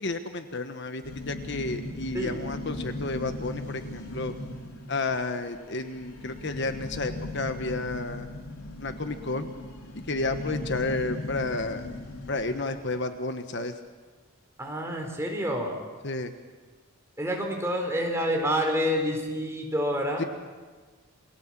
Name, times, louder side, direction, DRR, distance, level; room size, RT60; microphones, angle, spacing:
voice 1, 0.0-4.3 4.9-8.3 8.8-9.5 10.1-11.8 12.3-13.8 16.0-16.3 20.2-20.3, left 2 dB, 50° left, 8 dB, 1.2 m, -31 dB
sound 1, 1.0-13.0, left 2 dB, 80° left, 3.2 m, -38 dB
voice 2, 14.6-15.8 17.2-20.2, equal, 10° right, 1 dB, 4.1 m, -28 dB
29.0 x 22.5 x 7.5 m, 1.4 s
head